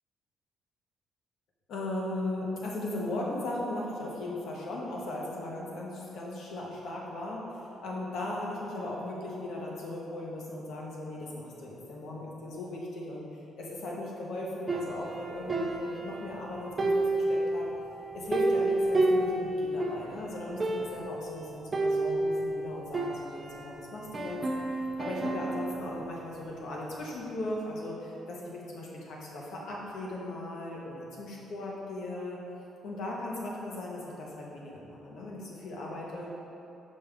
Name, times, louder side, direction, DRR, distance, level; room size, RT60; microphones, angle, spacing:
voice 1, 1.7-17.7 18.1-24.4 25.0-32.4 32.8-36.3, left 1 dB, 65° left, -3 dB, 1.1 m, -37 dB
sound 1, 14.7-16.4 16.8-20.1 20.3-20.4 20.6-21.2 21.7-23.7 24.1-25.8, right 2 dB, 30° right, 0.4 m, -30 dB
5.4 x 5.1 x 3.4 m, 2.9 s
cardioid pair, 130°, 0 cm